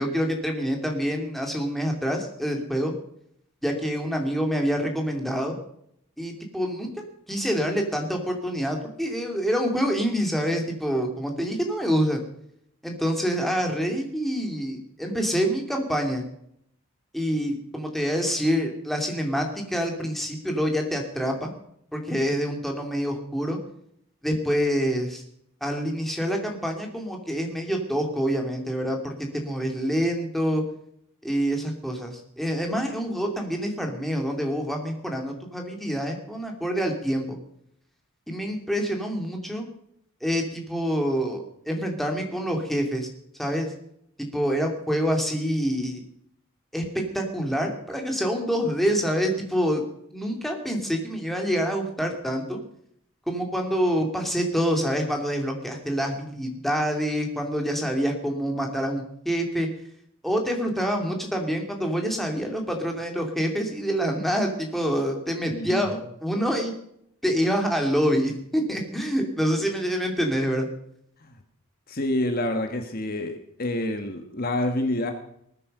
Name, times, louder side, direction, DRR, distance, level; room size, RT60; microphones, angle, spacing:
voice 1, 0.0-2.9 3.6-5.6 6.2-6.9 7.3-12.2 12.8-16.2 17.1-21.5 21.9-23.6 24.2-25.2 25.6-30.6 31.2-37.4 38.3-39.6 40.2-43.1 43.4-43.7 44.3-46.0 46.7-46.8 47.1-49.8 50.1-52.6 53.3-59.7 60.2-66.7 67.2-70.7, equal, ahead, 2 dB, 2.6 m, -26 dB
voice 2, 65.5-66.0 71.2-71.4 71.9-75.1, left 1 dB, 40° left, 6 dB, 1.4 m, -28 dB
19.5 x 9.9 x 6.6 m, 0.71 s
head